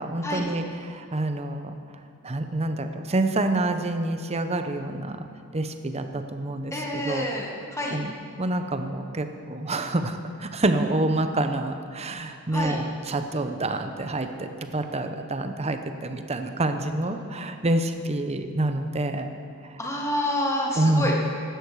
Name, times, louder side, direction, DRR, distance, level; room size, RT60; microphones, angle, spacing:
voice 1, 0.0-1.8 2.2-5.2 5.5-7.3 7.9-8.1 8.4-19.3 20.8-21.2, right 2 dB, 30° right, 7 dB, 0.8 m, -27 dB
voice 2, 6.7-8.0 12.5-12.8 19.8-21.4, left 1 dB, 15° left, -1 dB, 1.5 m, -28 dB
15.5 x 11.5 x 4.8 m, 2.4 s
head